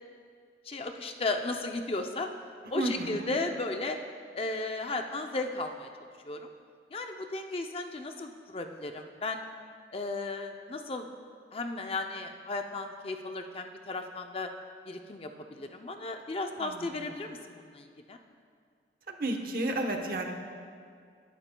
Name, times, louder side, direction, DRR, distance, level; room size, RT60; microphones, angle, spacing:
voice 1, 0.7-2.3 2.7-4.0 4.3-5.9 6.2-6.5 6.9-9.4 9.9-11.1 11.5-14.5 14.8-18.2, left 2 dB, 35° left, 5 dB, 0.5 m, -35 dB
voice 2, 2.6-3.4 16.6-17.1 19.1-20.3, right 2 dB, 55° right, 4 dB, 1.0 m, -33 dB
20.5 x 11.0 x 2.3 m, 2.2 s
head